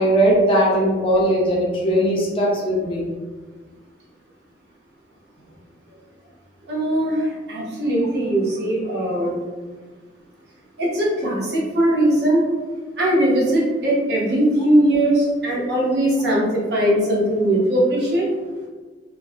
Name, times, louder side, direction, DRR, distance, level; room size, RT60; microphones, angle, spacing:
voice 1, 0.0-3.1, right 1 dB, 30° left, -3 dB, 0.5 m, -19 dB
voice 2, 6.7-9.3 10.8-12.4 13.0-18.3, right 1 dB, 60° right, -5 dB, 0.7 m, -20 dB
2.4 x 2.1 x 2.4 m, 1.4 s
head